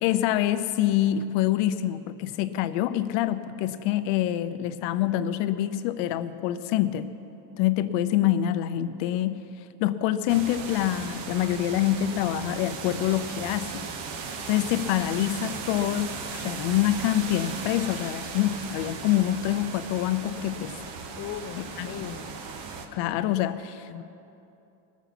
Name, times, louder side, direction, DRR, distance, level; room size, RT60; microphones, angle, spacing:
voice 1, 0.0-7.1 7.6-9.4 9.8-13.8 14.5-20.7 21.8-22.0 22.9-24.0, left 12 dB, 65° left, 11 dB, 0.8 m, -26 dB
sound 1, 10.3-22.9, right 5 dB, 60° right, 1.3 m, -37 dB
voice 2, 21.2-22.4 23.9-24.0, left 11 dB, 35° left, 8 dB, 0.4 m, -38 dB
20.5 x 7.2 x 5.9 m, 2.8 s
cardioid pair, 135°, 46 cm